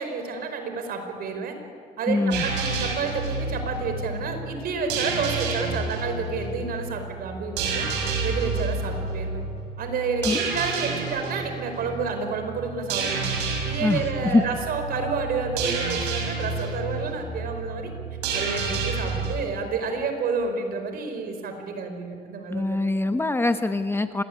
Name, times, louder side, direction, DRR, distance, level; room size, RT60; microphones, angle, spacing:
voice 1, 0.0-1.5 2.0-7.9 8.2-9.4 9.8-10.3 10.5-13.3 13.6-17.9 18.3-22.8, right 4 dB, 60° right, 6 dB, 4.9 m, -30 dB
voice 2, 2.1-2.4 10.2-10.4 13.8-14.4 22.5-24.2, left 2 dB, 15° left, 8 dB, 1.2 m, -23 dB
sound 1, 2.3-19.3, right 4 dB, 90° right, 6.7 m, -30 dB
26.0 x 20.5 x 10.0 m, 2.3 s
cardioid pair, 110°, 17 cm